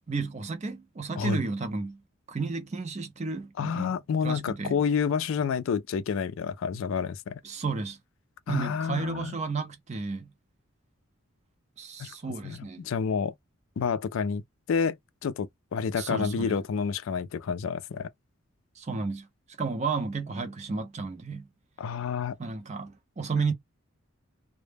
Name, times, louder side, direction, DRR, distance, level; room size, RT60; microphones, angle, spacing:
voice 1, 0.1-2.0 2.3-4.8 7.4-8.0 8.5-10.3 11.8-12.9 16.0-16.6 18.8-19.3 19.6-21.5 22.4-23.5, right 4 dB, 30° right, 0.4 m, -32 dB
voice 2, 3.6-7.4 8.5-9.3 12.0-12.1 12.4-13.3 13.8-14.4 14.7-15.0 15.2-18.1 21.8-22.4, left 6 dB, 65° left, 0.3 m, -29 dB
2.1 x 2.0 x 3.2 m
head